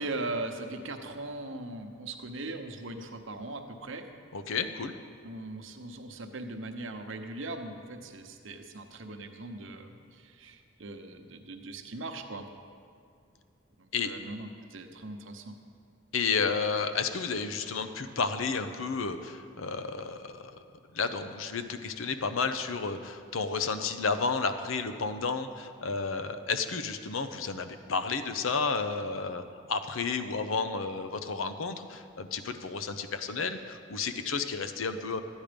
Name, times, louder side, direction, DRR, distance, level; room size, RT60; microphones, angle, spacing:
voice 1, 0.0-4.1 5.2-12.5 13.8-15.6, right 2 dB, 70° right, 5 dB, 0.9 m, -39 dB
voice 2, 4.3-4.9 13.9-14.1 16.1-20.6 20.9-29.4 29.7-35.2, left 5 dB, 80° left, 9 dB, 0.7 m, -32 dB
13.0 x 9.1 x 5.1 m, 2.3 s
head